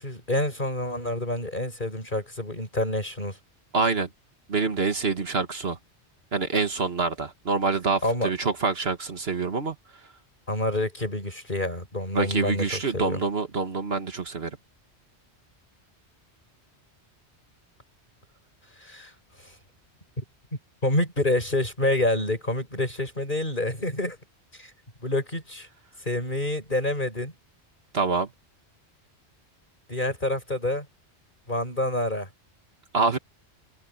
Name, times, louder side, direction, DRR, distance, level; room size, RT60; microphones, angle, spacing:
voice 1, 0.0-3.4 8.0-8.3 10.5-13.2 18.8-19.1 19.4-19.5 20.2-20.3 20.8-24.2 24.6-24.7 25.0-25.7 26.1-27.3 29.9-30.9 31.5-32.3, left 1 dB, 45° left, 7.2 m, -27 dB
voice 2, 3.7-4.1 4.5-5.8 6.3-9.8 12.1-14.5 27.9-28.3 32.9-33.2, right 4 dB, 65° right, 1.8 m, -26 dB
omnidirectional pair, 1.1 m